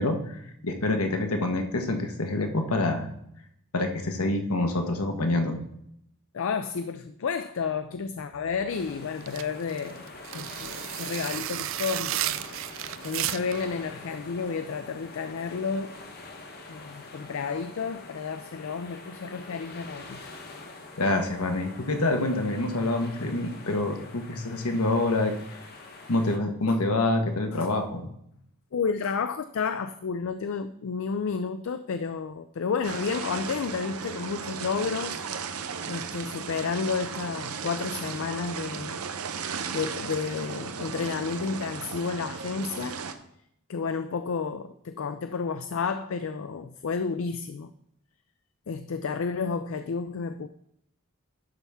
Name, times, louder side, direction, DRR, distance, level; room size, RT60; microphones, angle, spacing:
voice 1, 0.0-3.1 3.7-5.6 21.0-25.3 26.1-28.1, left 2 dB, 85° left, 5 dB, 1.2 m, -26 dB
voice 2, 6.3-10.0 10.3-12.4 13.0-16.0 16.7-20.3 26.7-26.8 27.5-27.7 28.7-35.2 35.9-39.0 39.7-43.0 43.7-47.7 48.7-50.5, left 5 dB, 65° left, 10 dB, 0.4 m, -31 dB
sound 1, 8.7-26.4, left 3 dB, 45° left, 1.0 m, -45 dB
sound 2, 9.2-13.7, right 13 dB, 60° right, 0.3 m, -33 dB
sound 3, 32.8-43.1, right 6 dB, 85° right, 0.7 m, -36 dB
11.5 x 5.6 x 3.5 m, 0.73 s
head